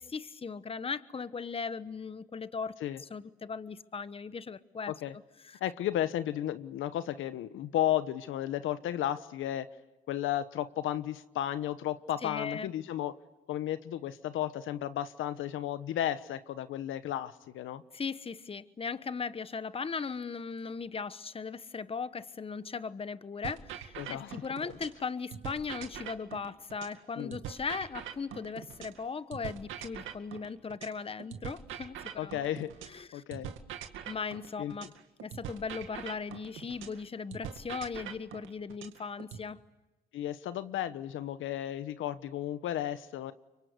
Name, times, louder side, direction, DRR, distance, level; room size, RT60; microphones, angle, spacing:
voice 1, 0.0-4.9 5.4-5.6 12.2-12.7 17.9-32.0 32.2-32.3 32.9-33.2 34.1-34.9 35.2-39.6, left 5 dB, 30° left, 14 dB, 1.1 m, -38 dB
voice 2, 5.6-9.7 10.1-13.1 13.5-17.8 24.0-24.4 27.2-27.4 32.2-32.7 33.1-33.5 34.6-34.7 40.1-43.3, left 12 dB, 80° left, 13 dB, 1.2 m, -33 dB
sound 1, 23.4-25.0 25.3-29.0 29.3-33.0 33.3-37.0 37.3-39.4, right 9 dB, 90° right, 2.2 m, -43 dB
29.5 x 24.5 x 8.2 m, 1.1 s
cardioid pair, 90°, 20 cm